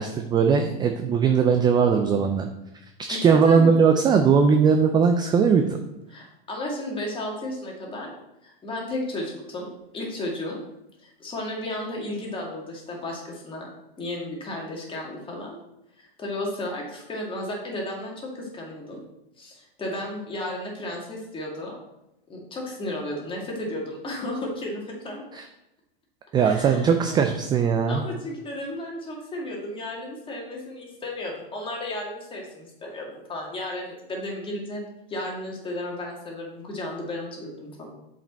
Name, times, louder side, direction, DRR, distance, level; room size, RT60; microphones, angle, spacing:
voice 1, 0.0-2.5 3.1-5.8 25.3-25.4 26.3-28.0, right 6 dB, 15° right, 6 dB, 0.3 m, -19 dB
voice 2, 3.1-3.7 6.1-8.1 8.4-10.6 11.0-13.7 14.0-15.6 16.0-19.0 19.4-21.8 22.3-25.2 26.4-27.2 27.9-34.8 35.1-37.9, left 1 dB, 15° left, -2 dB, 2.1 m, -33 dB
7.2 x 5.1 x 4.1 m, 0.89 s
hypercardioid pair, 125°, 30 cm